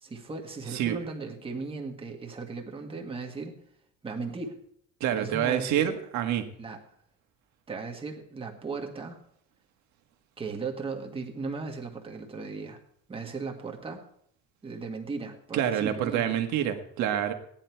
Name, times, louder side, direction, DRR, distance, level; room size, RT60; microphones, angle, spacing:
voice 1, 0.0-3.6 4.0-4.6 5.1-5.9 6.6-6.8 7.7-9.2 10.4-12.8 13.1-14.0 14.6-16.4, right 4 dB, 15° right, 2 dB, 1.6 m, -37 dB
voice 2, 5.0-6.5 15.5-17.3, right 10 dB, 60° right, 6 dB, 1.7 m, -27 dB
16.5 x 10.5 x 4.6 m, 0.69 s
cardioid pair, 180°, 33 cm